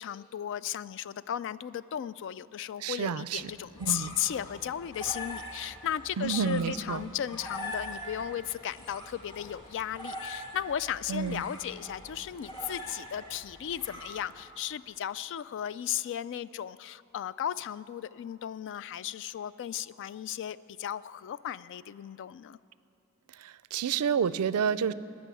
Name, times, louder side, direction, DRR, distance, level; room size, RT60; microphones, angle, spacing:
voice 1, 0.0-22.6, left 10 dB, 55° left, 18 dB, 0.3 m, -35 dB
voice 2, 2.8-3.4 3.8-4.2 6.2-7.0 11.1-11.4 23.4-24.9, right 6 dB, 85° right, 17 dB, 0.4 m, -29 dB
sound 1, 3.4-14.6, left 1 dB, 25° left, 2.0 m, -43 dB
17.5 x 6.3 x 9.7 m, 2.7 s
head